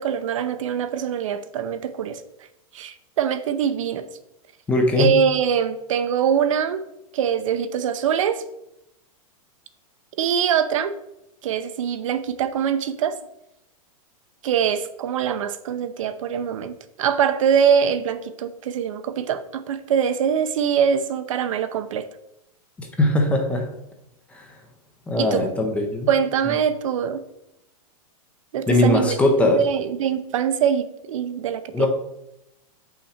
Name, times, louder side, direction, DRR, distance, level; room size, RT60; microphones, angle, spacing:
voice 1, 0.0-2.2 2.7-4.1 5.0-6.9 7.1-8.4 10.2-10.9 11.4-13.2 14.4-22.1 25.2-25.5 26.1-27.2 28.5-31.9, right 8 dB, 60° right, 0.7 m, -23 dB
voice 2, 4.7-5.1 22.8-23.7 24.3-24.5 25.1-26.1 26.5-26.6 28.7-29.6 31.7-31.9, left 2 dB, 5° left, 0.5 m, -20 dB
7.8 x 5.7 x 4.3 m
supercardioid pair, 175°, 19 cm